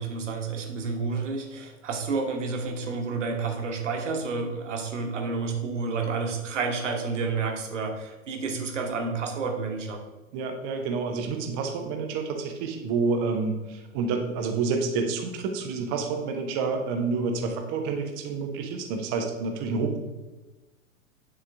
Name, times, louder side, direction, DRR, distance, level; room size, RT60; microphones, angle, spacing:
voice 1, 0.0-10.0, right 4 dB, 60° right, 3 dB, 1.3 m, -30 dB
voice 2, 10.3-20.0, right 4 dB, 15° right, 4 dB, 0.5 m, -29 dB
9.9 x 3.6 x 3.4 m, 1.2 s
figure-of-eight pair, 110°, 42 cm